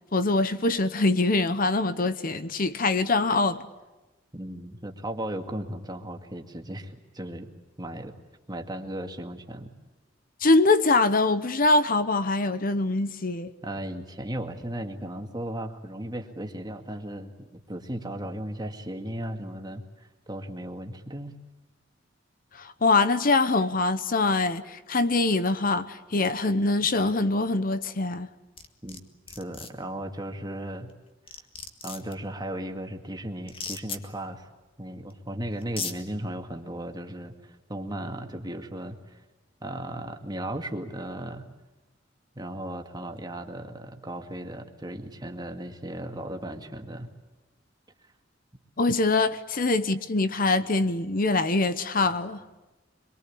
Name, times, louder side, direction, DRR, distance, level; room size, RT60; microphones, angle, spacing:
voice 1, 0.1-3.6 10.4-13.5 22.5-28.3 48.8-52.4, left 3 dB, 45° left, 1.0 m, -24 dB
voice 2, 4.3-7.5 7.8-8.1 8.5-9.7 13.6-21.4 28.8-29.0 29.4-30.9 31.8-34.5 34.8-39.2 39.6-41.5 42.4-47.1, right 1 dB, 20° right, 2.1 m, -36 dB
sound 1, 28.6-29.0 29.3-29.7 30.9-31.0 31.3-32.1 33.5-34.0 35.1-35.2 35.6-35.9, left 5 dB, 30° left, 1.9 m, -35 dB
26.0 x 23.0 x 8.6 m
head